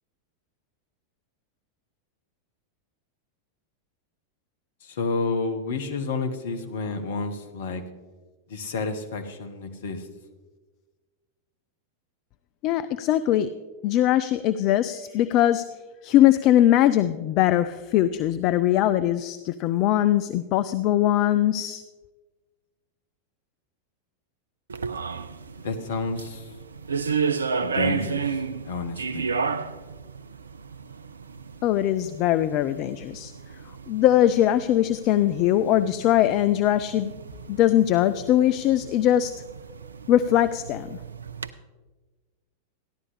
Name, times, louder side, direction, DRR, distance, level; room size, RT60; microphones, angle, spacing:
voice 1, 4.8-7.8 8.5-10.0 25.6-26.4 27.6-28.3 28.7-29.3, left 4 dB, 55° left, 7 dB, 1.0 m, -30 dB
voice 2, 12.6-13.5 13.8-15.6 16.0-21.8 31.6-33.3 33.9-37.1 37.5-39.3 40.1-41.0, left 12 dB, 40° left, 12 dB, 0.3 m, -21 dB
sound 1, 24.7-41.5, right 5 dB, 75° right, 0.4 m, -33 dB
14.0 x 11.0 x 3.3 m, 1.3 s
figure-of-eight pair, 90°, 0 cm